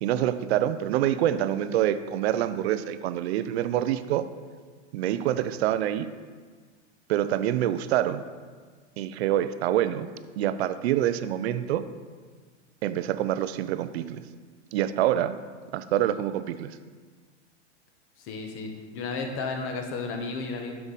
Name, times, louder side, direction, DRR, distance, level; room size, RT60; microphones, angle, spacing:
voice 1, 0.0-4.3 4.9-6.1 7.1-8.2 9.0-10.1 10.4-11.8 12.8-14.2 14.7-15.3 15.7-16.7, right 12 dB, 60° right, 12 dB, 0.5 m, -26 dB
voice 2, 18.2-20.7, left 4 dB, 35° left, 4 dB, 1.1 m, -33 dB
7.3 x 5.8 x 4.0 m, 1.5 s
hypercardioid pair, 125°, 36 cm